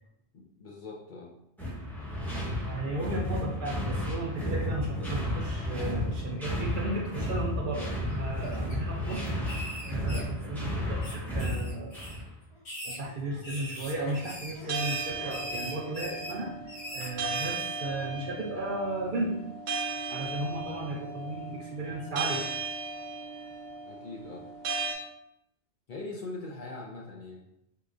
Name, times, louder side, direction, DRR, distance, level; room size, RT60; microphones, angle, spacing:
voice 1, 0.3-1.3 23.8-24.5 24.9-25.0 25.9-27.5, left 3 dB, 60° left, -2 dB, 0.6 m, -42 dB
sound 1, 1.6-12.3, left 1 dB, ahead, 0.7 m, -33 dB
voice 2, 2.6-9.6 9.8-12.1 12.8-19.4 20.1-22.4, right 2 dB, 60° right, 0 dB, 0.6 m, -35 dB
sound 2, 8.1-8.7 9.1-10.6 11.0-12.2 12.6-17.6, equal, 75° left, 1.5 m, -41 dB
sound 3, 14.7-24.9, right 4 dB, 80° right, 1.0 m, -36 dB
4.6 x 2.4 x 2.4 m, 0.79 s
omnidirectional pair, 1.2 m